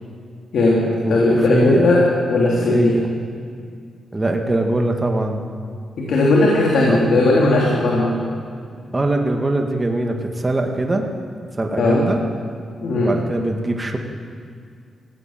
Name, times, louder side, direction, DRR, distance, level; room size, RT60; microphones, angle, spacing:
voice 1, 0.5-3.0 6.0-8.1 11.8-12.0 12.8-13.1, left 2 dB, 70° left, -3 dB, 3.4 m, -17 dB
voice 2, 1.0-1.8 2.7-3.1 4.1-5.4 6.9-7.0 8.9-11.1 11.6-12.2 13.0-14.0, right 2 dB, 15° right, 3 dB, 1.9 m, -22 dB
19.5 x 16.5 x 9.0 m, 2.2 s
wide cardioid pair, 140°, 0 cm